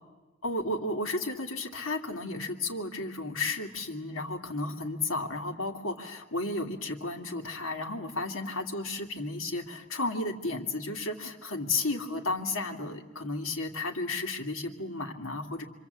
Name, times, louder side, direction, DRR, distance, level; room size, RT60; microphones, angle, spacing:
voice 1, 0.4-15.6, left 2 dB, 85° left, 2 dB, 2.7 m, -33 dB
26.5 x 25.5 x 8.3 m, 1.2 s
head